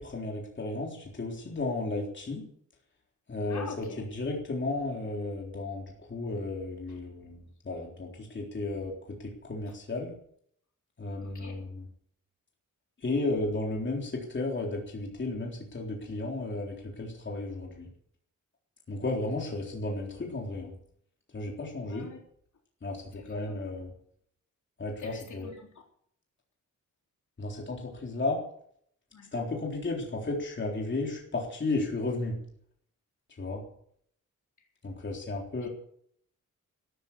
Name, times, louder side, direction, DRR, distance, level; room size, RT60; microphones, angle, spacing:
voice 1, 0.0-2.4 3.3-3.9 4.1-10.2 11.0-11.7 13.0-17.9 18.9-20.7 21.3-22.1 22.8-23.9 24.8-25.5 27.4-28.4 29.3-32.4 33.3-33.6 34.8-35.7, left 2 dB, 35° left, -1 dB, 3.8 m, -34 dB
voice 2, 3.5-4.0 6.9-7.0 11.2-11.6 21.9-22.2 23.1-23.6 25.0-25.7 29.1-29.3 34.6-34.7 35.6-35.7, left 5 dB, 65° left, 1 dB, 3.9 m, -45 dB
13.5 x 13.0 x 6.8 m, 0.65 s
wide cardioid pair, 170°, 31 cm